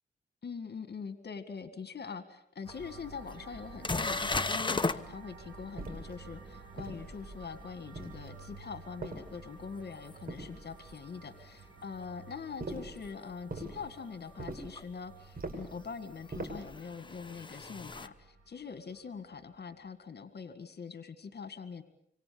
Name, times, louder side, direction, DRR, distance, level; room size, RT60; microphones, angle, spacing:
voice 1, 0.4-21.8, left 5 dB, 65° left, 10 dB, 2.0 m, -43 dB
sound 1, 2.6-19.8, right 4 dB, 85° right, 7.9 m, -53 dB
sound 2, 2.7-2.8 3.3-3.4 3.8-5.0 10.1-10.2 13.0-13.1 14.8-14.9 16.2-18.1, left 3 dB, 25° left, 1.1 m, -34 dB
sound 3, 5.8-6.2 6.8-7.4 7.9-8.5 9.0-9.7 10.3-11.0 12.6-13.0 13.5-13.8 14.4-14.8 15.4-15.8 16.3-16.7, right 2 dB, 55° right, 6.7 m, -42 dB
26.5 x 25.5 x 7.1 m, 0.68 s
cardioid pair, 80°, 18 cm